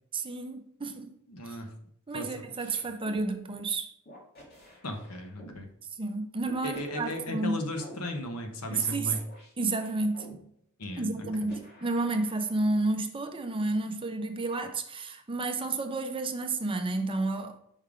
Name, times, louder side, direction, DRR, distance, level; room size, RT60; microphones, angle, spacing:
voice 1, 0.1-1.1 1.5-1.6 2.1-3.9 6.0-7.6 8.7-9.2 9.6-10.3 11.0-17.6, right 3 dB, 25° right, 0.6 m, -31 dB
voice 2, 1.3-1.7 2.1-2.8 4.8-5.7 6.6-9.2 10.8-11.5, left 1 dB, 80° left, 1.0 m, -36 dB
sound 1, 3.0-3.2 4.1-5.6 6.4-8.0 8.8-10.3 11.2-12.5, left 1 dB, 45° left, 2.0 m, -49 dB
5.5 x 3.6 x 4.8 m
head